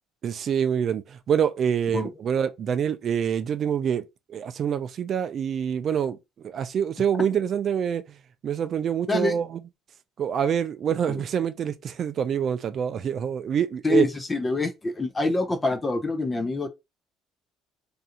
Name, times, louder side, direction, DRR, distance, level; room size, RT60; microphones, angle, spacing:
voice 1, 0.2-4.0 4.3-8.0 8.4-9.5 10.2-14.1, right 8 dB, 45° right, 0.3 m, -26 dB
voice 2, 13.8-16.7, left 2 dB, 20° left, 0.5 m, -25 dB
2.5 x 2.3 x 2.7 m
cardioid pair, 135°, 0 cm